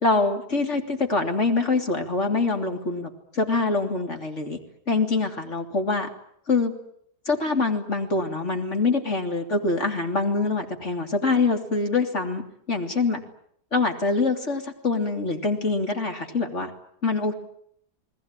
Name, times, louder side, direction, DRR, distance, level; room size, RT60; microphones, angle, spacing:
voice 1, 0.0-4.6 4.9-6.1 6.5-6.7 7.3-13.2 13.7-16.7 17.0-17.3, left 3 dB, 45° left, 4 dB, 3.5 m, -24 dB
29.5 x 20.0 x 9.1 m, 0.69 s
omnidirectional pair, 1.8 m